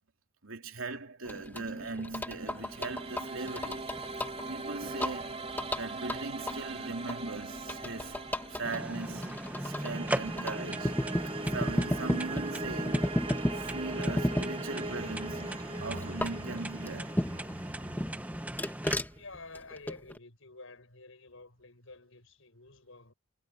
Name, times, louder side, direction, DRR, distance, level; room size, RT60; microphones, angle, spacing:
voice 1, 0.4-3.9 4.2-5.4 5.7-11.1 11.5-13.2 13.5-18.0, right 3 dB, 80° right, 2.8 m, -40 dB
sound 1, 1.3-17.6 18.0-20.2, left 1 dB, 10° left, 1.9 m, -35 dB
sound 2, 2.0-19.1, right 3 dB, 30° right, 3.4 m, -41 dB
sound 3, 8.7-18.9, right 1 dB, 10° right, 1.1 m, -39 dB
voice 2, 19.1-23.1, left 3 dB, 70° left, 7.2 m, -50 dB
head